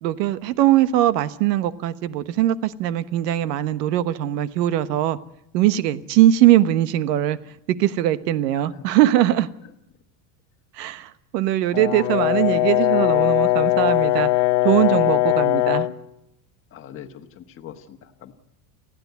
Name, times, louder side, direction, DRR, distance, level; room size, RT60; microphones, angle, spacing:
voice 1, 0.0-5.2 5.5-7.4 7.7-9.5 10.8-14.3 14.6-15.9, right 13 dB, 85° right, 1.3 m, -21 dB
voice 2, 8.6-8.9 16.7-18.3, left 9 dB, 25° left, 1.3 m, -42 dB
Brass instrument, 11.7-16.0, left 17 dB, 65° left, 1.2 m, -20 dB
29.5 x 10.0 x 9.4 m
supercardioid pair, 155°, 48 cm